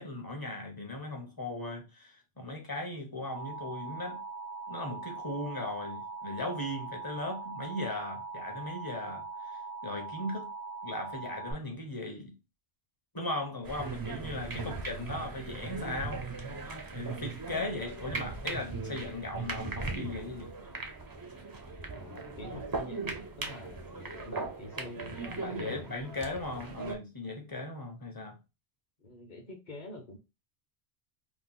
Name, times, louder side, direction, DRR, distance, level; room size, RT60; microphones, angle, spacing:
voice 1, 0.0-4.2 4.7-10.5 10.8-12.3 13.1-16.3 16.9-20.5 23.4-23.5 25.4-28.4, left 2 dB, 25° left, 0.6 m, -38 dB
Alarm, 3.3-11.5, right 3 dB, 85° right, 1.0 m, -41 dB
sound 1, 13.6-26.9, right 3 dB, 35° right, 0.3 m, -39 dB
voice 2, 14.5-15.3 21.9-25.9 29.0-30.2, left 1 dB, 50° left, 0.9 m, -46 dB
2.9 x 2.2 x 3.5 m
omnidirectional pair, 1.1 m